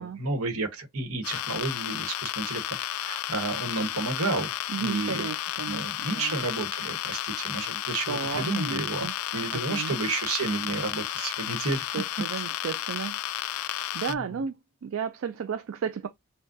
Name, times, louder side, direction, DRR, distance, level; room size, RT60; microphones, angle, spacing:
voice 1, 0.0-5.3 5.7-11.9 14.3-14.4, right 3 dB, 80° right, 1.2 m, -31 dB
sound 1, 1.2-14.1, left 13 dB, 80° left, 0.3 m, -33 dB
voice 2, 4.7-6.4 8.1-9.1 9.5-10.0 11.9-16.1, right 6 dB, 65° right, 0.3 m, -34 dB
6.0 x 2.2 x 2.6 m
head